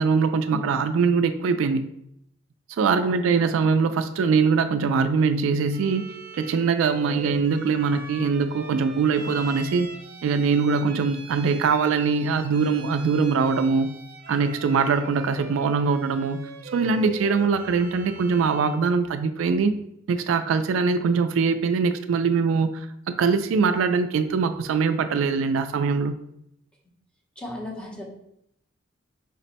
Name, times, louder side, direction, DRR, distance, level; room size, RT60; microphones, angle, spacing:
voice 1, 0.0-1.9 2.8-6.1 6.4-9.9 10.2-13.9 14.3-16.4 16.7-19.7 20.1-26.1, right 5 dB, 75° right, 9 dB, 0.3 m, -22 dB
voice 2, 3.0-3.6 7.1-7.4 27.4-28.1, left 1 dB, 5° left, -1 dB, 0.8 m, -37 dB
Bowed string instrument, 5.7-18.9, right 3 dB, 55° right, 0.7 m, -42 dB
5.1 x 2.1 x 4.0 m, 0.76 s
head